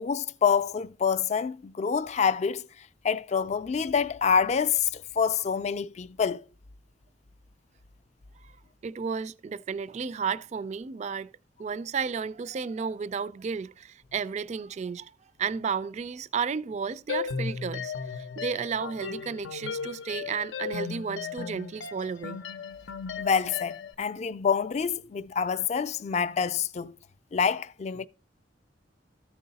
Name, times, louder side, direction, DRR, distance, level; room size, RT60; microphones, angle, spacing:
voice 1, 0.0-6.4 23.2-26.9 27.3-28.1, left 6 dB, 40° left, 0.4 m, -27 dB
voice 2, 8.8-11.3 11.6-15.1 15.4-22.4, right 6 dB, 40° right, 0.3 m, -33 dB
sound 1, 17.1-23.9, left 6 dB, 90° left, 0.6 m, -36 dB
13.5 x 4.7 x 4.0 m
head